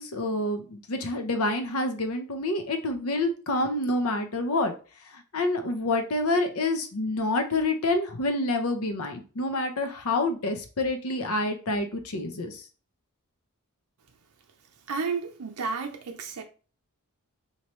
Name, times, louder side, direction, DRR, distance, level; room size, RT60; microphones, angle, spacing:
voice 1, 0.0-4.7 5.1-12.6, left 2 dB, 70° left, 0.8 m, -27 dB
voice 2, 14.9-16.4, right 5 dB, 80° right, 0.6 m, -32 dB
4.6 x 2.9 x 3.0 m
head